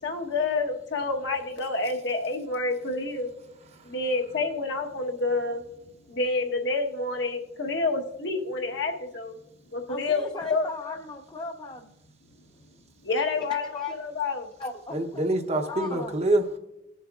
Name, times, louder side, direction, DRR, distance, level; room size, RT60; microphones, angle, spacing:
voice 1, 0.0-3.3 3.8-5.6 6.1-9.4 9.7-10.7 13.0-13.6 14.0-14.5, left 3 dB, 65° left, 2 dB, 1.2 m, -28 dB
voice 2, 9.9-11.9 13.6-13.9 14.6-15.2 15.6-16.1, left 3 dB, 25° left, 3 dB, 0.5 m, -36 dB
voice 3, 14.9-16.6, right 1 dB, 35° right, 5 dB, 0.8 m, -26 dB
20.5 x 7.1 x 2.4 m, 0.90 s
head